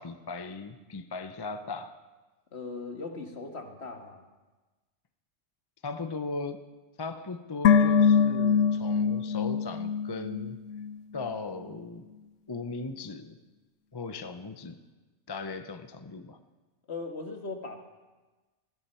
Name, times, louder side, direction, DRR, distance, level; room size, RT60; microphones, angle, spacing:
voice 1, 0.0-2.0 5.8-6.7 7.0-10.6 11.1-12.0 12.5-13.4 13.9-14.8 15.3-16.4, left 3 dB, 25° left, 9 dB, 0.6 m, -37 dB
voice 2, 2.5-4.2 16.9-17.9, left 3 dB, 60° left, 4 dB, 1.8 m, -39 dB
sound 1, 7.6-11.0 11.2-11.3, left 6 dB, 80° left, 1.0 m, -24 dB
19.5 x 15.5 x 4.4 m, 1.2 s
omnidirectional pair, 1.3 m